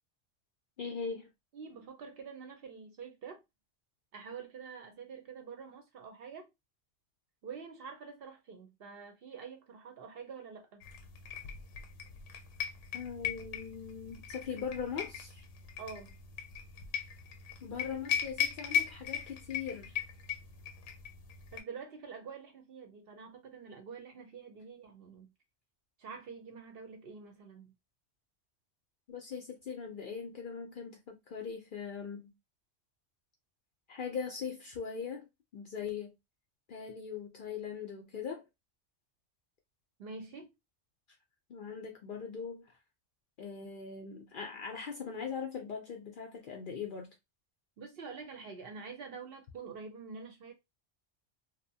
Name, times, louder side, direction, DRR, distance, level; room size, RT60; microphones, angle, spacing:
voice 1, 0.8-1.3 12.9-15.4 17.6-20.0 29.1-32.3 33.9-35.3 35.5-36.1 36.7-38.4 41.5-42.8 43.4-47.1, left 6 dB, 60° left, 0.6 m, -40 dB
voice 2, 1.5-3.4 4.1-6.5 7.4-10.8 15.8-16.2 21.5-25.3 26.0-27.7 40.0-40.5 47.8-50.5, right 5 dB, 60° right, 0.8 m, -47 dB
sound 1, 10.8-21.6, left 8 dB, 80° left, 0.9 m, -38 dB
2.7 x 2.1 x 2.7 m
omnidirectional pair, 1.2 m